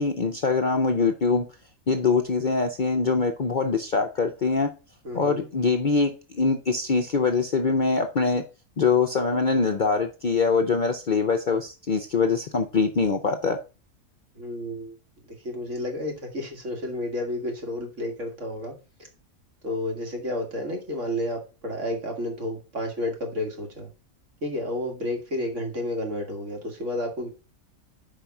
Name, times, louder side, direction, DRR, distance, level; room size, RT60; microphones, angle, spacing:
voice 1, 0.0-1.5 1.9-4.7 5.1-8.4 8.8-13.6, left 4 dB, 50° left, 0.6 m, -23 dB
voice 2, 5.0-5.5 14.4-14.9 15.4-18.7 19.6-23.9 24.4-27.3, left 1 dB, 60° right, 2.1 m, -31 dB
5.1 x 4.9 x 5.8 m
omnidirectional pair, 1.5 m